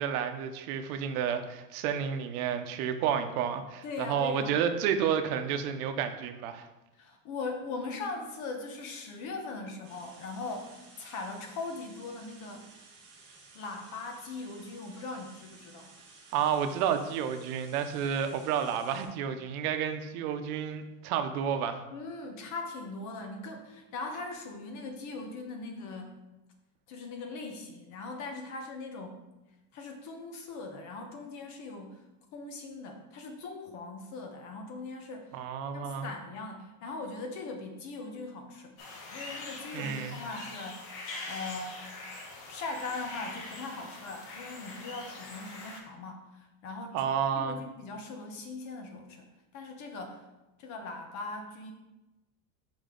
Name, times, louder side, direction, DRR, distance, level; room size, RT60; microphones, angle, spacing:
voice 1, 0.0-6.7 16.3-21.8 35.3-36.1 39.7-40.2 46.9-47.6, right 8 dB, 80° right, 8 dB, 0.8 m, -30 dB
voice 2, 3.8-4.6 6.9-12.7 13.5-15.9 21.9-26.2 26.9-29.2 29.7-32.0 32.3-35.4 35.7-38.7 39.1-40.9 41.3-41.9 42.5-47.1 47.3-50.2 50.6-51.7, left 3 dB, 40° left, 4 dB, 1.0 m, -40 dB
sound 1, 9.8-19.1, right 3 dB, 40° right, 2.2 m, -55 dB
sound 2, 38.8-45.8, left 2 dB, 70° left, 1.7 m, -43 dB
5.3 x 5.1 x 3.8 m, 1.0 s
cardioid pair, 170°, 43 cm